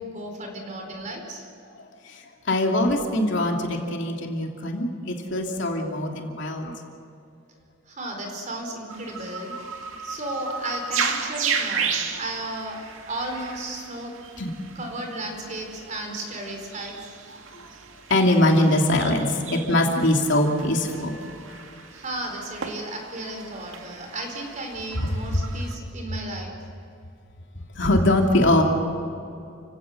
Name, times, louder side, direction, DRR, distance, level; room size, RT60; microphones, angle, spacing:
voice 1, 0.0-1.5 7.9-9.6 10.0-14.2 14.7-17.0 21.9-26.5, right 1 dB, 40° right, 2 dB, 4.6 m, -34 dB
voice 2, 2.5-6.7 14.4-14.5 18.1-21.1 25.0-25.1 27.8-28.6, left 1 dB, 65° left, 1 dB, 3.0 m, -22 dB
sound 1, 8.9-25.7, right 5 dB, 80° right, 2.2 m, -34 dB
29.5 x 17.0 x 6.7 m, 2.6 s
head